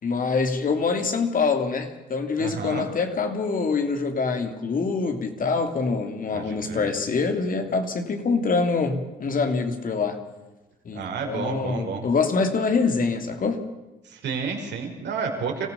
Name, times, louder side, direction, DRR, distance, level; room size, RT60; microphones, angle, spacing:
voice 1, 0.0-10.2 10.8-13.6, left 4 dB, 40° left, 6 dB, 3.0 m, -25 dB
voice 2, 2.4-2.9 6.3-6.9 10.9-12.0 14.0-15.7, right 5 dB, 60° right, 2 dB, 5.3 m, -31 dB
25.5 x 15.0 x 7.1 m, 1.1 s
supercardioid pair, 70°, 20 cm